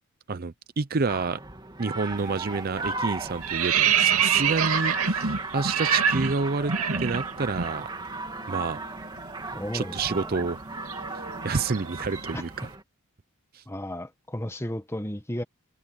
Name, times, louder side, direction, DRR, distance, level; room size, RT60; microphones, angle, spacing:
voice 1, 0.3-1.4 1.8-7.9 8.5-8.8 9.7-10.6 11.4-12.7 13.5-13.6, right 4 dB, 45° right, 0.6 m, -29 dB
sound 1, 1.1-12.8, right 3 dB, 20° right, 2.8 m, -36 dB
sound 2, 2.2-2.5 2.8-7.7 8.0-8.2 8.5-12.5, right 7 dB, 80° right, 2.8 m, -26 dB
voice 2, 9.5-10.5 12.3-12.4 13.7-15.4, left 1 dB, 10° left, 1.5 m, -34 dB
head